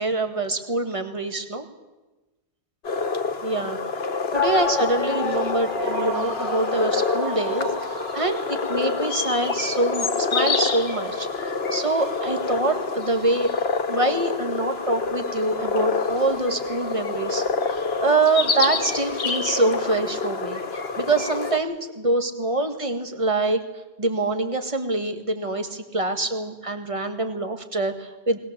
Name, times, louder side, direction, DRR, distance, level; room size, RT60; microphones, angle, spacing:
voice 1, 0.0-1.7 3.4-3.8 4.3-13.5 13.9-17.5 17.7-20.6 21.0-23.6 24.0-28.4, right 2 dB, 30° right, 6 dB, 1.8 m, -25 dB
sound 1, 2.8-21.6, left 4 dB, 75° left, 1.5 m, -27 dB
sound 2, 4.3-20.2, left 3 dB, 50° left, 2.2 m, -34 dB
20.5 x 20.5 x 7.5 m, 1.1 s
omnidirectional pair, 1.0 m